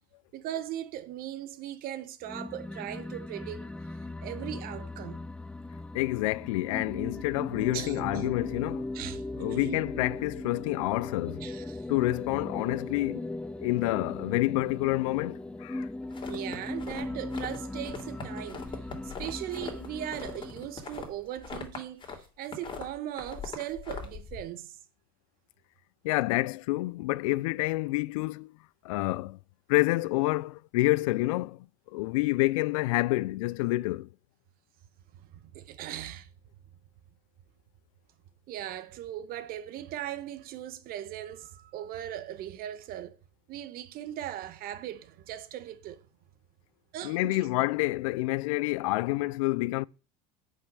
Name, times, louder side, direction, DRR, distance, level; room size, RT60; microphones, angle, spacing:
voice 1, 0.3-3.7 4.2-5.3 7.7-8.4 8.9-9.8 11.4-11.9 16.3-24.8 35.1-36.3 38.5-43.2 43.5-46.1 46.9-47.4, right 12 dB, 60° right, 1.1 m, -39 dB
sound 1, 2.2-20.8, left 2 dB, 5° left, 0.5 m, -38 dB
voice 2, 5.9-8.9 9.4-11.4 11.9-13.3 13.6-15.9 26.0-28.5 28.8-29.4 29.7-31.7 31.9-34.1 47.0-49.8, left 20 dB, 85° left, 0.4 m, -28 dB
sound 2, 16.1-17.6 17.8-22.2 22.4-24.4, left 5 dB, 30° left, 2.9 m, -41 dB
8.2 x 5.6 x 6.1 m
supercardioid pair, 90°, 17 cm